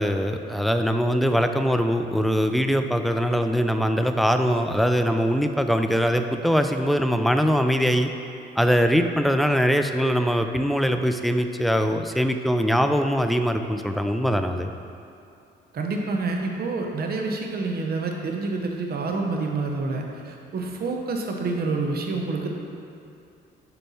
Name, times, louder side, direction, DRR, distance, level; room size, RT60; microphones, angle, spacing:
voice 1, 0.0-8.1 8.6-14.7, equal, ahead, 7 dB, 0.3 m, -22 dB
voice 2, 15.7-22.5, right 3 dB, 50° right, 1 dB, 0.9 m, -28 dB
6.8 x 4.4 x 4.2 m, 2.6 s
cardioid pair, 90°, 20 cm